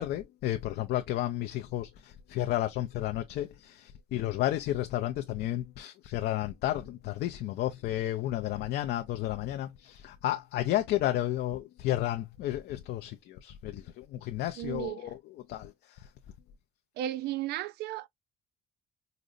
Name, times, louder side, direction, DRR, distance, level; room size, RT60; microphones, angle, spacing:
voice 1, 0.0-15.2 15.5-16.1, left 14 dB, 70° left, 0.5 m, -32 dB
voice 2, 14.6-15.1 17.0-18.1, right 13 dB, 75° right, 0.4 m, -34 dB
5.0 x 2.0 x 2.6 m
cardioid pair, 110°, 17 cm